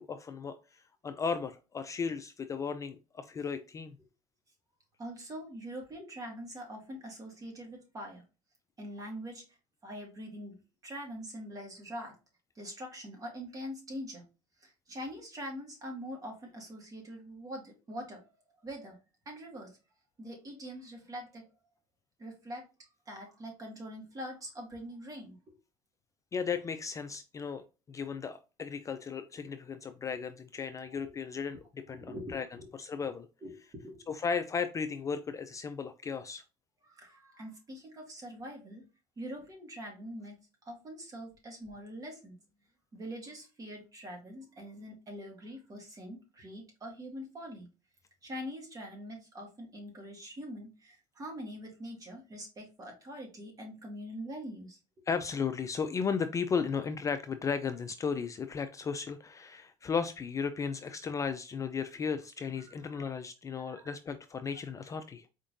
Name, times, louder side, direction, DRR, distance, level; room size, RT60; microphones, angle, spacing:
voice 1, 0.0-3.9 26.3-32.5 32.7-33.3 34.1-36.4 55.1-65.3, left 6 dB, 25° left, 9 dB, 0.4 m, -35 dB
voice 2, 5.0-8.2 8.8-9.4 9.8-10.5 10.8-12.1 12.6-14.2 14.6-18.3 18.6-19.0 19.3-19.7 20.2-21.5 22.2-22.6 23.1-25.4 30.9-31.2 31.9-32.7 33.4-34.0 36.8-38.8 39.2-40.4 40.7-42.4 42.9-47.7 48.2-54.8 62.6-63.0 63.6-63.8, equal, 30° right, 1 dB, 1.9 m, -44 dB
4.5 x 3.6 x 2.6 m, 0.30 s
supercardioid pair, 105°, 12 cm